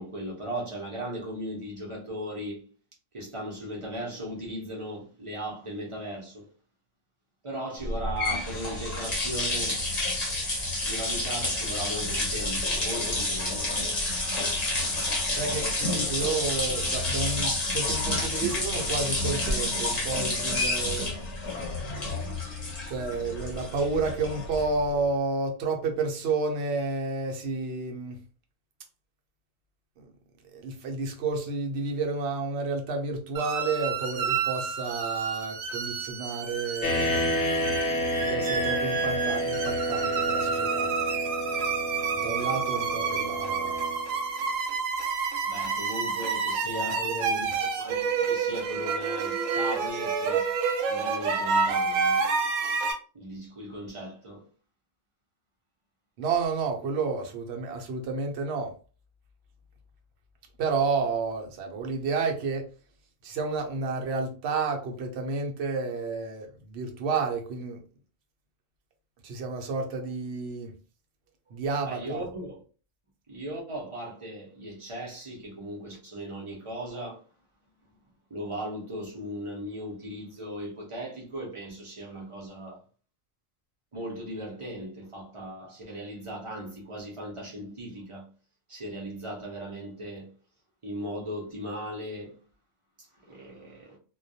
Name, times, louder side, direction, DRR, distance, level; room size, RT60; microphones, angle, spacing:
voice 1, 0.0-2.6 3.1-6.5 7.4-9.8 10.8-13.7 45.4-50.5 50.9-52.2 53.1-54.5 71.8-72.5 73.3-77.2 78.3-82.8 83.9-88.3 88.7-90.3 90.8-92.4 93.2-94.0, right 1 dB, 35° right, 0.5 m, -37 dB
sound 1, 7.8-24.9, left 2 dB, 40° left, 0.7 m, -29 dB
voice 2, 15.4-21.1 22.9-28.2 30.0-30.1 30.4-37.3 38.2-40.9 42.1-43.8 46.7-47.4 56.2-58.7 60.6-62.7 63.2-67.8 69.2-70.8 71.5-72.2, right 4 dB, 65° right, 0.8 m, -31 dB
sound 2, 33.4-52.9, right 5 dB, 85° right, 1.0 m, -29 dB
sound 3, 36.8-44.3, equal, 70° left, 0.8 m, -29 dB
2.2 x 2.1 x 2.6 m
omnidirectional pair, 1.3 m